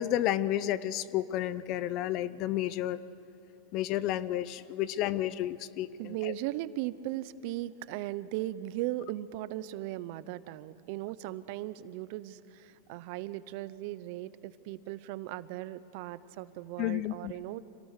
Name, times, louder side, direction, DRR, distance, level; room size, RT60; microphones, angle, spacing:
voice 1, 0.0-3.0 3.7-6.3 16.8-17.3, left 13 dB, 45° left, 18 dB, 0.6 m, -31 dB
voice 2, 6.0-17.6, right 15 dB, 55° right, 16 dB, 0.6 m, -37 dB
26.0 x 17.5 x 6.6 m, 2.9 s
supercardioid pair, 135°, 0 cm